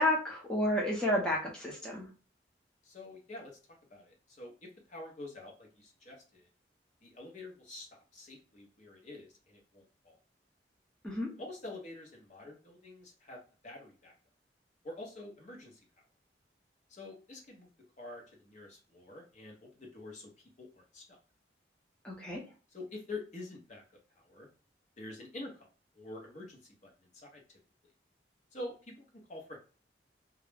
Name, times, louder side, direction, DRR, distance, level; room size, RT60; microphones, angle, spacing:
voice 1, 0.0-2.1 11.0-11.3 22.0-22.4, left 1 dB, 5° left, -3 dB, 0.6 m, -31 dB
voice 2, 2.8-3.6 3.9-6.5 7.0-10.1 11.4-14.1 14.8-15.8 16.9-17.7 18.0-20.3 20.6-21.0 22.7-23.8 24.2-24.5 25.0-25.7 26.0-27.4 28.5-29.6, left 2 dB, 45° left, 1 dB, 0.8 m, -47 dB
2.3 x 2.0 x 3.2 m, 0.36 s
head